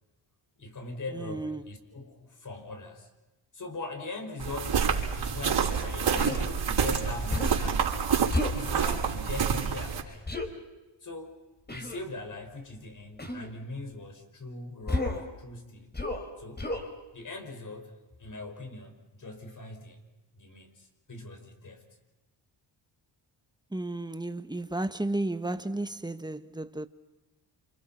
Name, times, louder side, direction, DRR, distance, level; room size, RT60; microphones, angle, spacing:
voice 1, 0.6-3.1 3.5-8.0 8.5-10.3 11.0-11.4 11.7-15.9 16.4-16.7 17.1-17.9 18.2-20.0 20.4-21.8, left 3 dB, 40° left, 5.8 m, -41 dB
voice 2, 1.1-1.7 23.7-26.9, right 2 dB, 10° right, 1.4 m, -33 dB
sound 1, 4.4-10.0, right 7 dB, 60° right, 6.2 m, -28 dB
Human voice, 6.1-6.4 7.3-7.7 8.3-8.6 10.3-10.5 11.7-12.0 13.2-13.5 14.9-15.3 15.9-16.3 16.6-16.9, left 2 dB, 20° left, 4.5 m, -31 dB
29.5 x 27.5 x 5.8 m
cardioid pair, 85°, 49 cm